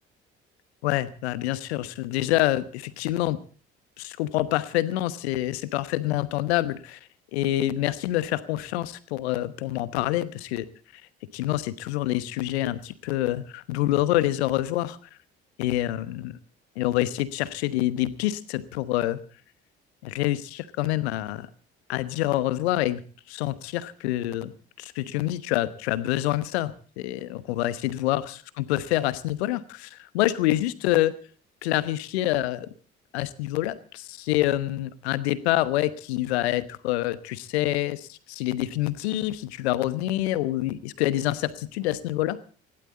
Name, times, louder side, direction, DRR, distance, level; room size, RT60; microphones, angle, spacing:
voice 1, 0.8-3.4 4.0-7.0 7.3-10.7 10.9-11.0 11.3-15.0 15.6-16.4 16.8-19.2 20.0-21.5 21.9-23.0 23.3-24.5 24.8-31.2 31.6-32.7 33.1-42.4, left 15 dB, 70° left, 15 dB, 1.1 m, -26 dB
20.5 x 16.0 x 4.1 m, 0.40 s
figure-of-eight pair, 50°, 33 cm